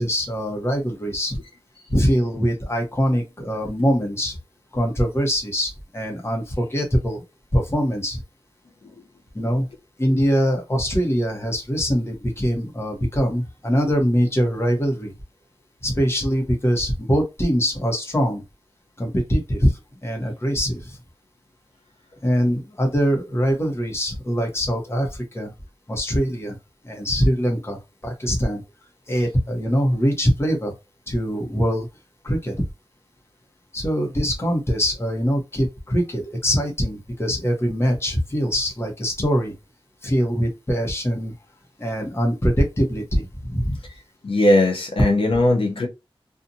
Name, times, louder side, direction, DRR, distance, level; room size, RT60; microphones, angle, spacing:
voice 1, 0.0-1.4 1.9-4.4 4.7-7.2 7.5-8.2 9.3-9.7 10.0-15.1 15.8-18.4 19.0-21.0 22.2-25.5 25.9-26.6 26.8-28.6 29.1-30.7 31.1-31.9 32.2-32.5 33.7-39.5 40.0-41.3 41.8-43.8, equal, 25° left, 1.0 m, -23 dB
voice 2, 43.9-45.9, left 1 dB, 70° left, 0.7 m, -19 dB
2.6 x 2.4 x 2.6 m
wide cardioid pair, 80°, 10 cm